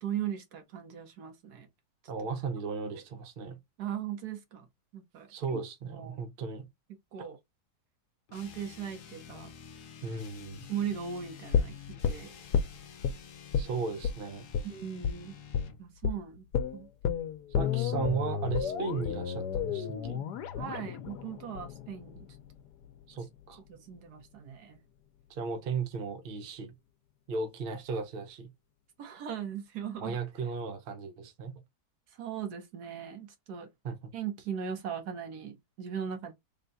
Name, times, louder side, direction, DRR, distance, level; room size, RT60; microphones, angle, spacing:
voice 1, 0.0-1.7 3.8-4.7 4.9-5.6 5.8-6.2 7.1-7.4 8.3-9.5 10.7-12.3 14.6-15.3 15.8-16.5 16.7-16.9 20.6-22.3 23.7-24.8 29.0-30.2 32.2-33.7 34.1-36.3, right 8 dB, 75° right, 1.5 m, -38 dB
voice 2, 2.1-3.6 5.3-6.7 10.0-10.7 13.6-14.4 17.6-20.2 23.1-23.6 25.3-26.7 27.3-28.5 30.0-31.5 33.8-34.1, right 5 dB, 50° right, 0.7 m, -36 dB
sound 1, 8.3-15.8, left 8 dB, 60° left, 1.0 m, -49 dB
sound 2, 11.5-13.2 13.5-13.7 14.0-14.2 14.5-14.7 15.0-15.2 15.5-15.7 16.0-16.2 16.5-22.5 22.8-22.9, left 7 dB, 85° left, 1.2 m, -31 dB
3.7 x 2.3 x 3.9 m
omnidirectional pair, 1.7 m